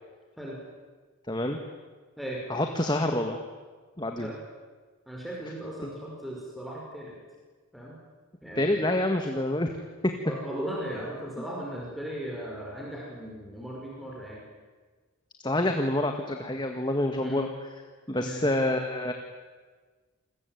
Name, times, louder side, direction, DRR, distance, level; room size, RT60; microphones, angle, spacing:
voice 1, 1.3-1.6 2.5-3.4 4.0-4.3 8.5-9.7 10.0-10.1 15.4-17.5 18.1-19.1, left 1 dB, 20° left, 4 dB, 1.8 m, -27 dB
voice 2, 5.1-7.1 7.7-8.0 8.4-8.9 10.2-14.4 15.6-15.7 17.2-17.5 18.2-18.5, right 1 dB, ahead, -3 dB, 5.6 m, -37 dB
29.0 x 21.0 x 9.4 m, 1.4 s
head